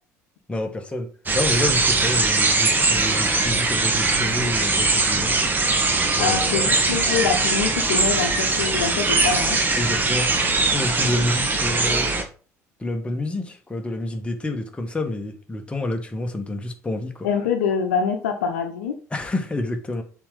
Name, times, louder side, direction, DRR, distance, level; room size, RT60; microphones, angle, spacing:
voice 1, 0.5-5.3 6.1-6.7 9.8-10.3 10.6-12.1 12.8-17.3 19.1-20.0, left 1 dB, 15° left, 1.7 m, -28 dB
sound 1, 1.3-12.2, right 3 dB, 20° right, 1.5 m, -21 dB
voice 2, 6.2-9.6 17.2-19.0, left 6 dB, 65° left, 1.1 m, -25 dB
7.0 x 4.9 x 5.1 m
figure-of-eight pair, 60°, 8 cm